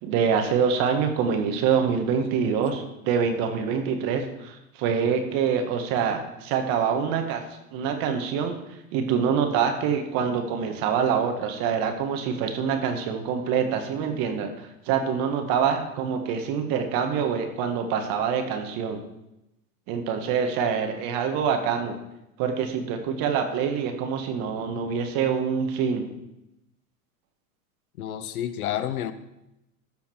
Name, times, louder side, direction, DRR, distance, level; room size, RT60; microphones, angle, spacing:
voice 1, 0.0-7.4 7.7-8.5 8.9-19.0 19.9-22.0 22.4-26.1, right 7 dB, 55° right, 5 dB, 1.8 m, -25 dB
voice 2, 28.0-29.1, left 11 dB, 85° left, 13 dB, 0.9 m, -30 dB
13.5 x 5.7 x 4.6 m, 0.90 s
hypercardioid pair, 105°, 42 cm